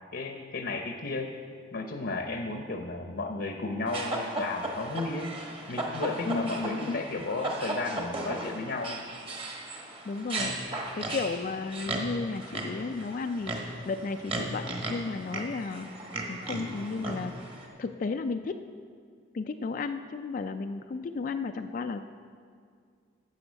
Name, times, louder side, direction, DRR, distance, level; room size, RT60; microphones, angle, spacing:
voice 1, 0.1-1.3 1.7-5.3 5.7-9.0, left 3 dB, 60° left, 4 dB, 0.8 m, -33 dB
sound 1, 3.9-17.7, right 2 dB, 30° right, 1.2 m, -36 dB
voice 2, 6.2-7.0 10.0-10.5 10.9-15.9 16.3-17.3 17.8-18.6 19.3-22.0, left 4 dB, 45° left, 7 dB, 0.3 m, -33 dB
10.5 x 7.6 x 6.4 m, 2.2 s
head